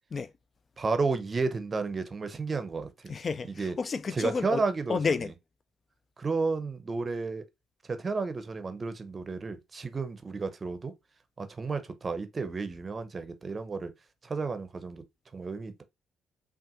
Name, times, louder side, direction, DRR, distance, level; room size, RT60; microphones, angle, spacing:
voice 1, 0.8-3.1 3.5-3.8 4.1-5.0 6.2-7.4 7.9-10.9 11.4-13.9 14.2-15.0 15.3-15.8, right 4 dB, 35° right, 0.6 m, -32 dB
voice 2, 3.1-4.6 4.9-5.3, left 5 dB, 40° left, 0.4 m, -30 dB
5.4 x 2.5 x 2.5 m
hypercardioid pair, 50°, 0 cm